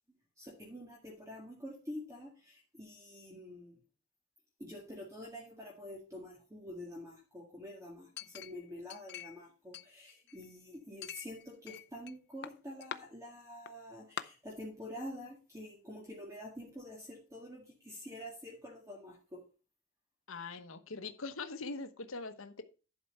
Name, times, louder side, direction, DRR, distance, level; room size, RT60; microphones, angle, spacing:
voice 1, 0.4-3.8 4.6-19.4, left 1 dB, 15° right, -2 dB, 2.0 m, -47 dB
Chink clink, 8.2-9.4 9.7-10.5 11.0-12.1 12.4-13.0 13.7-13.8 14.2-14.3, left 9 dB, 55° left, 0.6 m, -44 dB
voice 2, 20.3-22.6, left 3 dB, 70° left, 9 dB, 1.0 m, -42 dB
11.0 x 4.6 x 6.5 m, 0.34 s
head